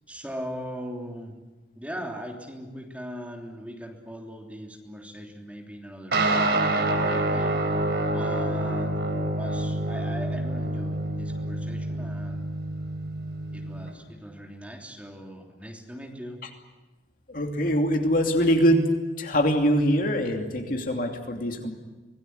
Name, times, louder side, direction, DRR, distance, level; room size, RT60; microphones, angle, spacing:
voice 1, 0.1-1.4 1.7-7.5 8.1-9.0 9.3-12.4 13.5-16.4, equal, 10° right, 1 dB, 3.2 m, -39 dB
sound 1, 6.1-13.9, right 2 dB, 65° right, 4.1 m, -27 dB
voice 2, 17.3-18.8 19.2-21.7, equal, 50° left, 3 dB, 2.8 m, -23 dB
25.5 x 19.0 x 9.6 m, 1.2 s
head